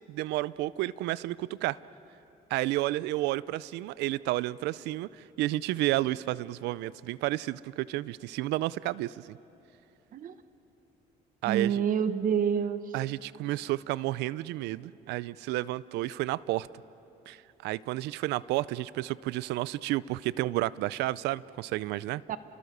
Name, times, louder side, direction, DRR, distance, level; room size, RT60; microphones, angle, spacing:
voice 1, 0.1-1.8 2.5-9.4 11.4-11.8 12.9-16.7 17.3-22.2, right 17 dB, 85° right, 20 dB, 0.5 m, -31 dB
voice 2, 11.4-12.9 22.3-22.4, right 8 dB, 55° right, 12 dB, 1.0 m, -27 dB
30.0 x 22.5 x 6.7 m, 3.0 s
cardioid pair, 110°, 17 cm